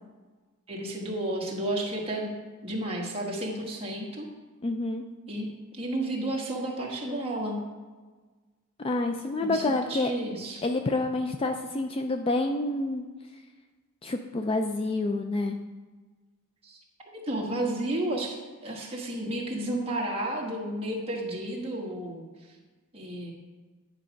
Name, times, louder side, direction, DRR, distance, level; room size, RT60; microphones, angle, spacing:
voice 1, 0.7-2.3 2.6-4.3 5.3-7.6 9.4-10.6 16.6-16.8 17.0-22.2 22.9-23.3, right 1 dB, 25° right, -2 dB, 1.4 m, -32 dB
voice 2, 4.6-5.0 8.8-10.1 10.6-13.0 14.0-15.6, left 2 dB, 25° left, 6 dB, 0.3 m, -28 dB
10.0 x 4.6 x 5.1 m, 1.3 s
head